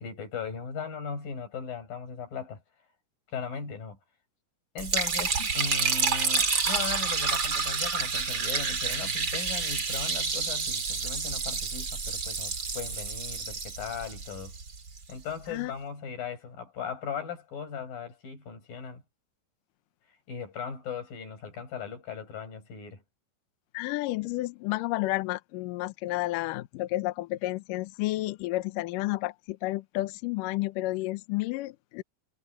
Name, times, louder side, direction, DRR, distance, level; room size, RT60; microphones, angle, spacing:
voice 1, 0.0-2.6 3.3-4.0 4.8-14.5 15.1-19.0 20.3-23.0, left 6 dB, 60° left, 7.6 m, -38 dB
Liquid, 4.8-15.0, right 5 dB, 30° right, 3.0 m, -29 dB
voice 2, 23.7-32.0, left 18 dB, 80° left, 1.9 m, -31 dB
omnidirectional pair, 4.7 m